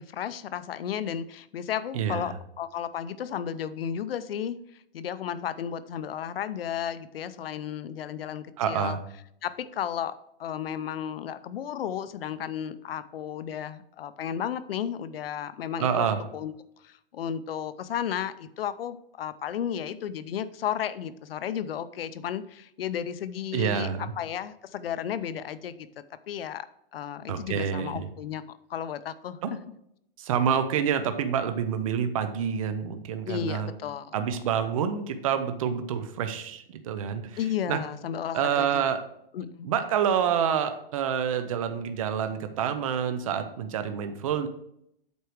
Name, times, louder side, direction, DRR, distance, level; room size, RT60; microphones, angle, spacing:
voice 1, 0.0-4.6 4.9-9.0 9.4-10.1 10.4-16.1 16.3-16.5 16.8-25.9 26.3-26.7 26.9-29.4 33.2-34.1 37.4-38.9 39.3-39.7, left 9 dB, 80° left, 14 dB, 0.6 m, -33 dB
voice 2, 1.9-2.4 8.6-9.0 15.8-16.2 23.5-24.1 27.3-28.1 29.4-29.5 30.2-33.7 34.1-37.4 37.7-37.8 38.3-39.0 39.6-44.5, right 8 dB, 35° right, 9 dB, 0.7 m, -27 dB
8.2 x 4.7 x 4.7 m, 0.75 s
hypercardioid pair, 175°, 29 cm